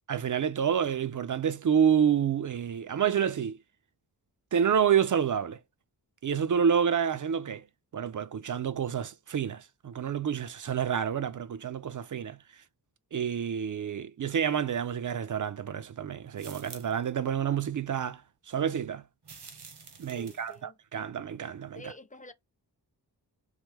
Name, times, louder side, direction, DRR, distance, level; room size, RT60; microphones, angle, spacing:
voice 1, 0.1-3.6 4.5-5.6 6.2-7.6 7.9-12.4 13.1-18.2 18.5-19.0 20.0-21.9, right 8 dB, 50° right, 0.5 m, -28 dB
sound 1, 16.4-17.1 19.2-20.6, right 5 dB, 70° right, 1.0 m, -48 dB
voice 2, 20.1-20.7 21.7-22.3, left 1 dB, 20° left, 0.5 m, -48 dB
3.1 x 2.2 x 3.5 m
cardioid pair, 50°, 42 cm